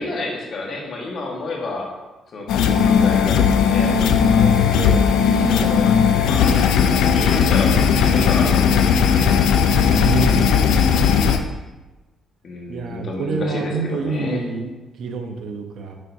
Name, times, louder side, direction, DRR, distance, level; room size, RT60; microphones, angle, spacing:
voice 1, 0.0-1.9 2.3-5.9 6.1-6.5 7.1-9.2 12.4-14.4, left 2 dB, 55° left, -1 dB, 1.4 m, -30 dB
sound 1, 2.5-11.4, left 7 dB, 85° left, 0.4 m, -16 dB
voice 2, 4.7-5.1 10.0-10.5 12.7-14.7 15.0-16.0, right 4 dB, 70° right, 5 dB, 0.7 m, -26 dB
6.4 x 5.8 x 2.7 m, 1.1 s
cardioid pair, 90°, 0 cm